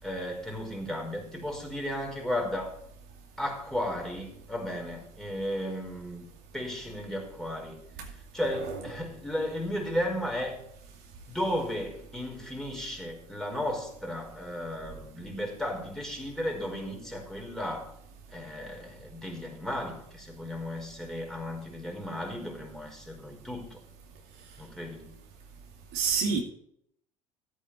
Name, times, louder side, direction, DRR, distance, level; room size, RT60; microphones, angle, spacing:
voice 1, 0.0-2.7 3.4-6.3 6.5-7.8 8.3-10.6 11.3-17.9 18.3-23.8 24.6-25.1, left 1 dB, ahead, 0 dB, 4.7 m, -34 dB
voice 2, 25.9-26.4, right 6 dB, 60° right, 2 dB, 2.4 m, -28 dB
14.0 x 8.6 x 4.3 m, 0.69 s
hypercardioid pair, 70°, 18 cm